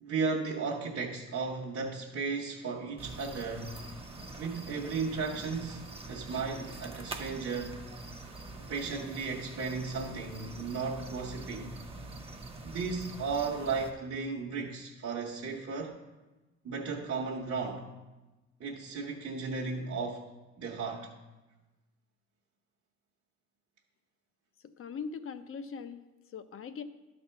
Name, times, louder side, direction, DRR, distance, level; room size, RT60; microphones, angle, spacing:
voice 1, 0.0-3.8 4.4-7.8 8.6-11.8 12.6-16.0 16.6-17.9 18.6-20.2 20.6-21.1, right 4 dB, 50° right, 1.0 m, -35 dB
sound 1, 3.0-13.9, right 2 dB, 20° right, 0.9 m, -45 dB
voice 2, 24.8-26.0 26.3-26.8, left 6 dB, 45° left, 0.6 m, -40 dB
11.5 x 4.2 x 5.6 m
cardioid pair, 90°, 30 cm